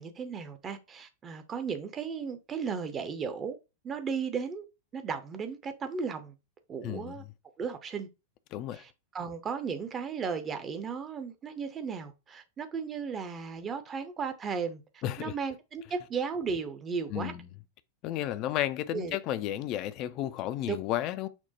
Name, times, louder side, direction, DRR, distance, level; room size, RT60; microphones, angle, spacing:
voice 1, 0.0-3.6 3.8-4.6 4.9-6.3 6.7-7.2 7.6-8.1 8.7-17.3 18.9-19.2 20.7-20.8, right 6 dB, 25° right, 0.6 m, -35 dB
voice 2, 6.8-7.1 8.5-8.8 15.0-15.3 17.1-17.4 18.0-21.3, left 13 dB, 40° left, 0.3 m, -32 dB
5.9 x 2.1 x 2.8 m
figure-of-eight pair, 90°, 0 cm